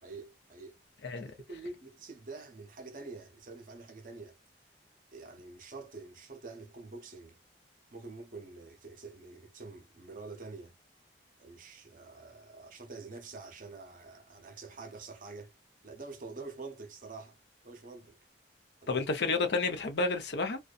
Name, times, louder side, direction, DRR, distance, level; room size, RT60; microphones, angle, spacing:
voice 1, 0.0-0.8 1.3-4.4 5.1-7.4 7.9-10.7 11.4-15.5 15.8-17.4 17.6-18.2 18.8-19.0, right 3 dB, 45° right, 0.6 m, -46 dB
voice 2, 18.9-20.6, left 3 dB, 65° left, 0.6 m, -30 dB
2.6 x 2.2 x 2.3 m
head